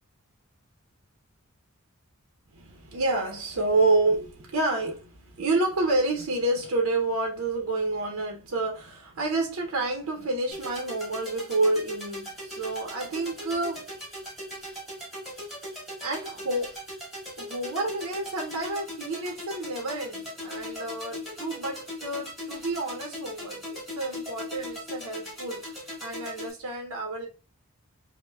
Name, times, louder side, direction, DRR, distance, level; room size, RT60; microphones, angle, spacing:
voice 1, 2.5-13.9 16.0-16.8 17.4-27.3, right 2 dB, 70° right, 0.6 m, -29 dB
sound 1, 10.5-26.5, left 1 dB, ahead, 1.9 m, -39 dB
5.3 x 2.1 x 2.2 m
head